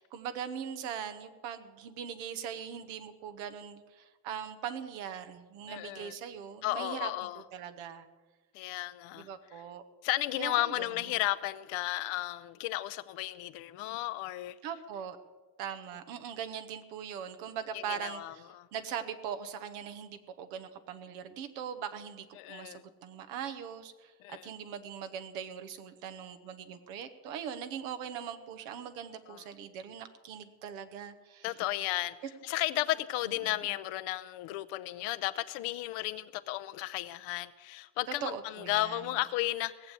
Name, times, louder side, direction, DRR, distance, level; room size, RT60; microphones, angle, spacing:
voice 1, 0.0-7.1 7.5-8.1 9.1-9.8 10.4-10.9 14.6-15.2 15.6-31.5 32.2-32.3 33.4-33.6 38.2-39.1, right 8 dB, 85° right, 9 dB, 1.2 m, -41 dB
voice 2, 5.7-6.2 6.6-7.4 8.5-9.3 10.0-14.6 17.7-18.7 22.4-22.8 24.2-24.5 29.3-29.4 31.4-32.2 32.4-39.9, left 17 dB, 80° left, 12 dB, 0.8 m, -34 dB
17.5 x 7.6 x 8.2 m, 1.3 s
hypercardioid pair, 60°, 49 cm